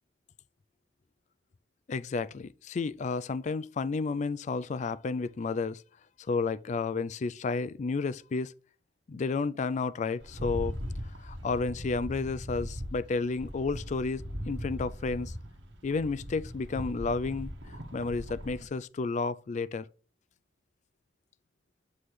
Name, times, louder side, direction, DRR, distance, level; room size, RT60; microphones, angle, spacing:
voice 1, 1.9-5.8 6.3-8.5 9.1-10.7 11.2-15.3 15.8-17.5 17.9-19.9, left 4 dB, 40° left, 0.3 m, -31 dB
Rattle, 10.2-18.7, equal, 75° right, 1.4 m, -39 dB
7.5 x 3.3 x 5.9 m
head